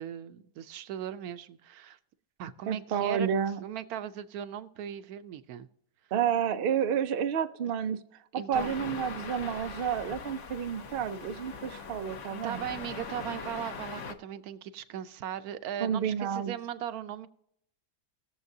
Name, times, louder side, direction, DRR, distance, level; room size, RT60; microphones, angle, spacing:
voice 1, 0.0-2.0 2.4-3.3 3.6-5.7 8.3-8.7 12.4-17.3, right 10 dB, 70° right, 12 dB, 1.0 m, -38 dB
voice 2, 2.7-3.6 6.1-8.0 8.3-12.6 15.8-16.5, right 8 dB, 85° right, 8 dB, 0.5 m, -30 dB
sound 1, 8.5-14.1, left 5 dB, 55° left, 1.1 m, -41 dB
19.5 x 7.1 x 2.7 m, 0.73 s
omnidirectional pair, 1.8 m